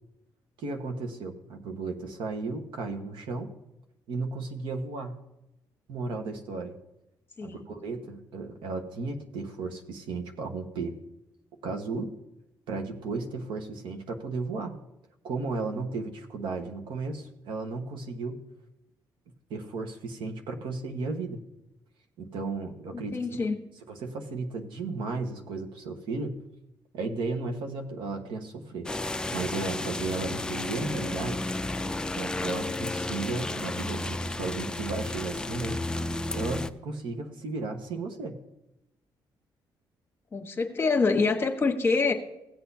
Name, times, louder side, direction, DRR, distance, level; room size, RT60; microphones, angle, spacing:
voice 1, 0.6-3.5 4.1-5.2 5.9-6.8 7.4-10.9 11.6-12.2 12.7-14.7 15.2-18.4 19.5-21.4 22.2-23.2 23.9-26.4 26.9-28.9 29.3-31.4 32.2-35.8 36.3-38.4, right 3 dB, 80° right, 4 dB, 1.3 m, -34 dB
voice 2, 22.9-23.6 40.3-42.1, left 4 dB, 30° left, 3 dB, 1.4 m, -26 dB
sound 1, 28.9-36.7, left 2 dB, 10° left, 0.4 m, -32 dB
16.5 x 8.2 x 2.8 m, 0.89 s
cardioid pair, 115°, 8 cm